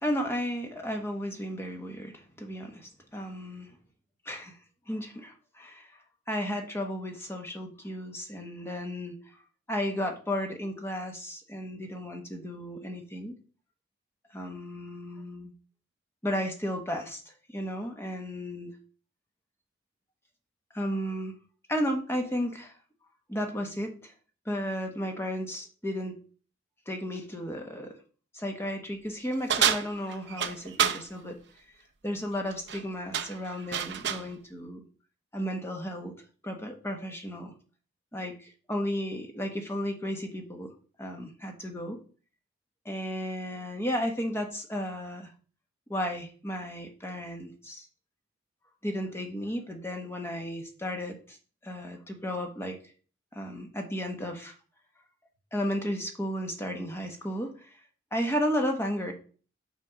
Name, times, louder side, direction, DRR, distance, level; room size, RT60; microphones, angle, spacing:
voice 1, 0.0-3.7 4.2-4.6 4.9-6.0 6.3-9.2 9.7-13.3 14.3-15.5 16.2-18.7 20.7-21.3 21.7-22.7 23.3-24.1 24.4-26.2 26.9-28.0 28.3-31.4 32.0-34.8 35.3-36.1 36.4-37.5 38.1-40.7 41.0-42.0 42.8-45.3 45.9-47.9 48.8-51.4 51.6-52.8 53.3-54.5 55.5-57.8 58.1-59.1, equal, 10° left, 3 dB, 1.1 m, -34 dB
sound 1, 29.5-31.0 32.5-32.8 33.1-34.3, right 8 dB, 60° right, 0.6 m, -28 dB
6.0 x 5.7 x 4.9 m, 0.40 s
head